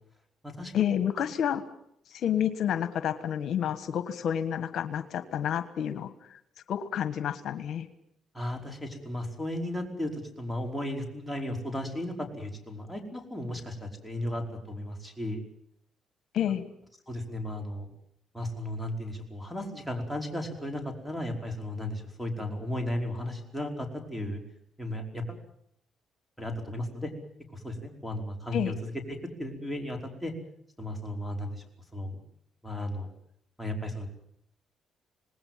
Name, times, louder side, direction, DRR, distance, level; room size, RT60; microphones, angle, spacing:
voice 1, 0.7-1.6 2.1-6.4 6.7-7.9 16.3-16.6 28.5-28.7, left 9 dB, 70° left, 10 dB, 1.4 m, -29 dB
voice 2, 8.3-15.4 17.1-17.9 18.3-24.4 24.8-25.4 26.4-27.1 27.5-28.7 29.1-30.3 30.8-31.6 31.9-32.2 32.6-33.1 33.6-34.1, left 1 dB, ahead, 4 dB, 5.1 m, -35 dB
26.5 x 19.5 x 7.5 m, 0.72 s
cardioid pair, 90°, 0 cm